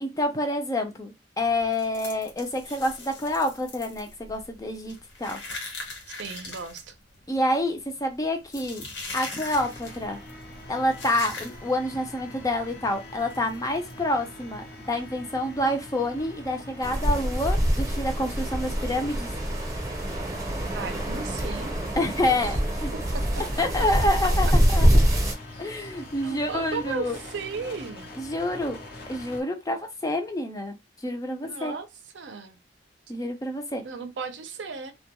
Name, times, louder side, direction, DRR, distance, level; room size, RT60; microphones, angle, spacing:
voice 1, 0.0-5.4 7.3-8.8 9.1-10.2 10.7-19.3 22.0-22.9 23.6-24.9 25.6-27.2 28.2-28.8 29.1-30.8 31.0-31.8 33.1-33.8, left 1 dB, 20° left, 0.4 m, -28 dB
sound 1, 1.4-11.9 12.2-12.4 12.7-12.8 13.3-13.9, left 3 dB, 75° left, 1.1 m, -40 dB
voice 2, 6.2-6.9 20.7-21.7 26.2-28.1 31.4-31.9 32.1-32.6 33.8-34.9, right 5 dB, 70° right, 0.5 m, -35 dB
sound 2, 9.5-29.4, left 2 dB, 60° left, 0.7 m, -43 dB
sound 3, 16.8-25.3, equal, 20° right, 0.7 m, -25 dB
2.2 x 2.2 x 2.8 m
head